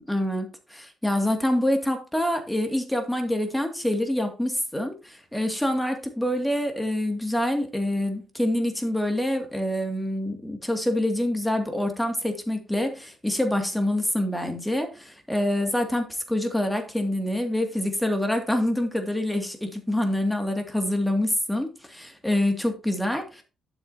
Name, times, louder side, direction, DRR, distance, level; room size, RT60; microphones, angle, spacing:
voice 1, 0.1-23.4, left 1 dB, 5° left, 5 dB, 2.4 m, -26 dB
11.5 x 7.7 x 2.9 m, 0.31 s
figure-of-eight pair, 40°, 0 cm